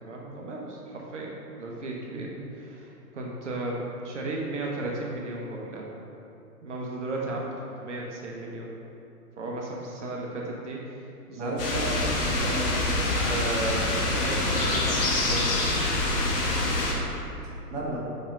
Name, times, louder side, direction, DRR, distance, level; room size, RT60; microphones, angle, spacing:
voice 1, 0.0-5.9 6.6-8.7 9.4-11.6 13.2-15.7, right 2 dB, 50° right, -2 dB, 1.2 m, -35 dB
voice 2, 11.3-12.8 17.7-18.0, right 1 dB, 20° right, -5 dB, 1.1 m, -33 dB
sound 1, 11.6-16.9, left 2 dB, 35° left, 1.3 m, -26 dB
6.0 x 5.2 x 5.0 m, 2.8 s
figure-of-eight pair, 120°, 47 cm